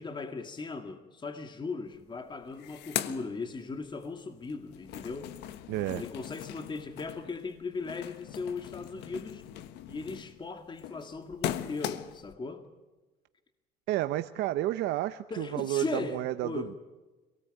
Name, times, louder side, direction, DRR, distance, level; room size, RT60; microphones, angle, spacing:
voice 1, 0.0-5.3 5.9-9.4 9.9-12.7 15.3-16.7, left 4 dB, 25° left, 1.9 m, -38 dB
sound 1, 1.9-2.0 2.3-4.1 4.4-12.3, left 12 dB, 90° left, 1.3 m, -40 dB
voice 2, 5.7-6.0 13.9-16.7, right 15 dB, 85° right, 0.8 m, -31 dB
27.0 x 18.5 x 9.0 m
cardioid pair, 110°, 17 cm